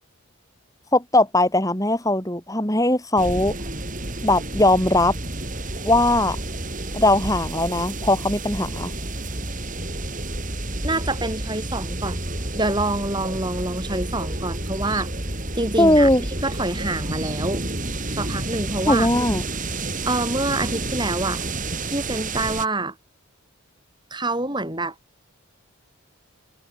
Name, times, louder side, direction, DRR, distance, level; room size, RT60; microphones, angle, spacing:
voice 1, 0.9-3.5 4.2-5.1 5.8-6.4 6.9-8.9 15.8-16.2 18.9-19.4, left 1 dB, 15° left, 5.9 m, -19 dB
sound 1, 3.2-22.7, right 2 dB, 35° right, 6.8 m, -30 dB
voice 2, 10.8-12.2 12.5-15.1 15.6-16.1 16.4-17.7 18.2-19.1 20.0-21.4 21.9-22.9 24.1-24.9, right 2 dB, 20° right, 7.2 m, -26 dB
head